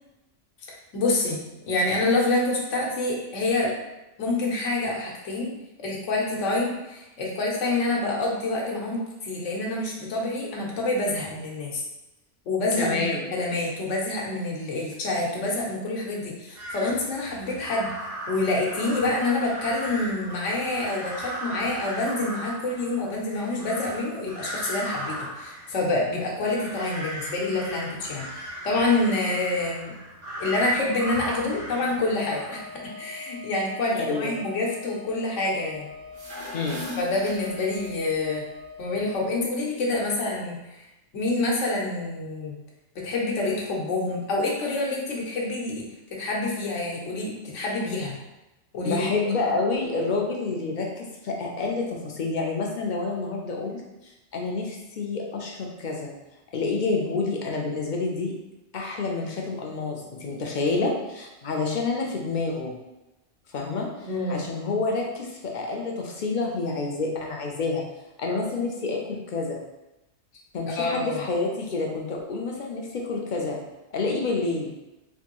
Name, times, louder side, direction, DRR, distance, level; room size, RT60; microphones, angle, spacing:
voice 1, 0.9-1.4 1.7-3.7 4.2-5.5 5.8-11.8 12.5-13.0 13.3-17.9 18.3-29.9 30.4-32.6 33.0-35.9 37.0-38.4 38.8-40.6 41.1-42.6 42.9-45.8 46.1-48.2 48.7-49.1 64.0-64.5 70.8-71.2, left 2 dB, 90° left, -2 dB, 1.1 m, -27 dB
voice 2, 12.8-13.2 33.9-34.3 36.5-36.8 48.8-53.8 54.3-56.1 56.5-58.3 58.7-62.7 63.5-67.8 68.2-69.6 70.5-73.6 73.9-74.7, left 3 dB, 60° left, 0 dB, 0.5 m, -28 dB
sound 1, 16.6-32.8, right 1 dB, 75° right, 1.2 m, -37 dB
Wind instrument woodwind instrument, 32.5-39.2, left 5 dB, 45° right, 0.7 m, -43 dB
sound 2, 36.0-38.1, left 1 dB, 60° right, 1.4 m, -38 dB
3.4 x 2.6 x 2.9 m, 0.98 s
omnidirectional pair, 1.2 m